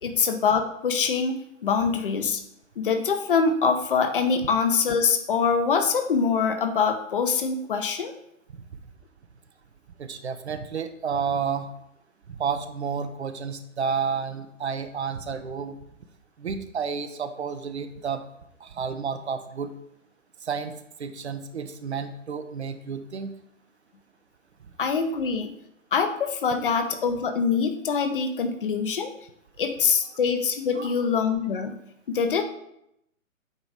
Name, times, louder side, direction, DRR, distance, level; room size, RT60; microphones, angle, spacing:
voice 1, 0.0-2.4 2.8-8.1 24.8-25.5 25.9-29.1 29.6-31.8 32.1-32.4, left 5 dB, 40° left, 6 dB, 0.8 m, -24 dB
voice 2, 10.0-11.7 12.3-15.8 16.4-18.2 18.6-19.7 20.4-23.3 30.8-30.9, right 6 dB, 55° right, 9 dB, 0.8 m, -31 dB
8.3 x 3.0 x 5.0 m, 0.79 s
figure-of-eight pair, 130°, 40 cm